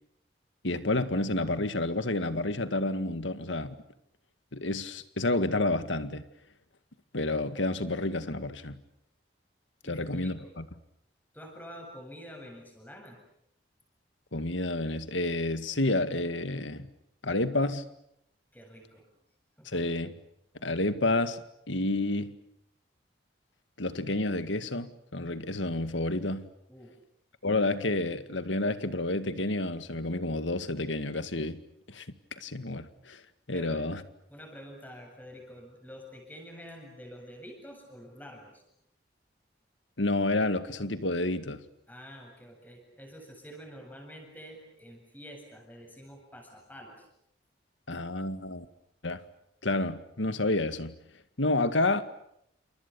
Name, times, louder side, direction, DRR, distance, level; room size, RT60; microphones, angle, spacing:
voice 1, 0.6-3.8 4.5-6.2 7.1-8.8 9.9-10.7 14.3-16.9 17.2-17.9 19.7-20.2 20.6-21.4 21.7-22.4 23.8-26.5 27.4-31.6 31.9-32.1 32.4-33.2 33.5-34.0 40.0-41.6 47.9-48.7 49.0-49.2 49.6-51.0 51.4-52.0, left 2 dB, 80° left, 2.0 m, -29 dB
voice 2, 9.8-10.5 11.3-13.2 18.5-19.1 19.6-19.8 26.7-26.9 33.5-33.8 34.3-38.6 41.9-47.0, equal, 10° left, 7.9 m, -47 dB
29.5 x 28.0 x 7.0 m
head